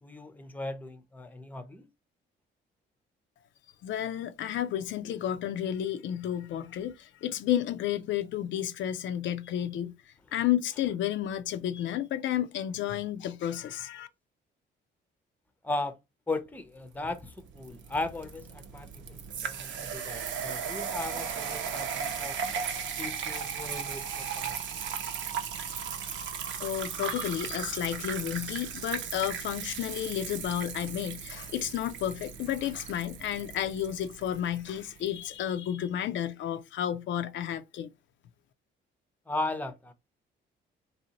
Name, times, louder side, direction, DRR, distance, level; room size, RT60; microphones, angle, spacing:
voice 1, 0.0-1.9 15.6-15.9 16.3-22.4 23.0-24.5 39.3-39.9, left 2 dB, 10° left, 0.6 m, -37 dB
voice 2, 3.8-14.1 26.6-37.9, left 11 dB, 70° left, 0.4 m, -32 dB
sound 1, 17.1-35.1, right 7 dB, 70° right, 0.7 m, -37 dB
3.4 x 2.7 x 2.8 m
cardioid pair, 90°, 20 cm